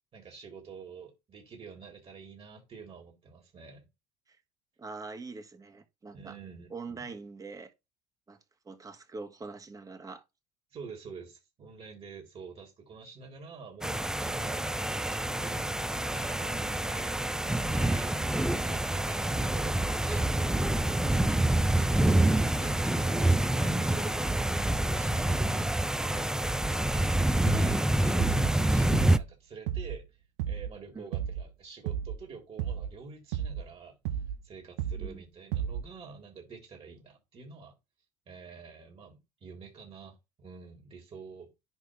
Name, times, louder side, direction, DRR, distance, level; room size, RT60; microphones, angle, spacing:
voice 1, 0.1-3.9 6.1-7.1 10.7-18.2 18.5-21.2 21.7-30.1 30.5-34.0 34.4-37.7 38.3-41.5, right 5 dB, 40° right, 3.6 m, -48 dB
voice 2, 4.8-6.4 6.7-7.7 8.3-8.4 8.7-10.2 16.5-16.8 28.6-28.9 30.9-31.1 35.0-35.2, right 4 dB, 25° right, 1.7 m, -44 dB
sound 1, 13.8-29.2, right 1 dB, 5° right, 0.5 m, -27 dB
sound 2, 27.5-27.8 28.2-28.6 28.9-29.3 29.7-30.0 30.4-30.8 31.1-31.5 31.9-32.2 32.6-33.0 33.3-33.7 34.1-34.4 34.8-35.2 35.5-35.9, right 9 dB, 80° right, 0.8 m, -33 dB
10.5 x 3.5 x 3.3 m
supercardioid pair, 90°, 15 cm